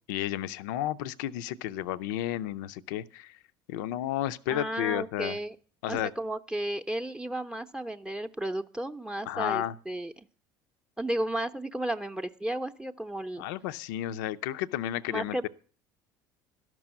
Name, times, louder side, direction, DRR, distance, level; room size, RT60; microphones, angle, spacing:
voice 1, 0.0-3.4 3.7-5.4 5.8-6.1 9.3-9.7 13.4-15.5, left 12 dB, 70° left, 0.5 m, -32 dB
voice 2, 4.5-5.6 5.9-10.3 11.0-13.4 15.1-15.5, right 1 dB, 10° right, 0.7 m, -33 dB
12.5 x 6.1 x 8.7 m
hypercardioid pair, 65°, 11 cm